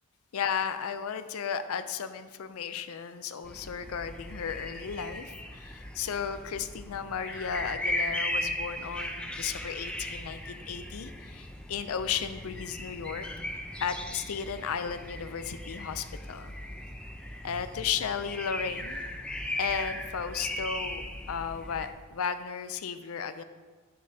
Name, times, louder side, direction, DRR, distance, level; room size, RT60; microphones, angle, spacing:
voice 1, 0.3-13.3 13.8-16.5 17.4-19.0 19.6-23.4, left 7 dB, 90° left, 11 dB, 0.5 m, -34 dB
sound 1, 3.4-21.9, left 1 dB, 5° left, 0.5 m, -37 dB
9.5 x 7.6 x 2.8 m, 1.4 s
head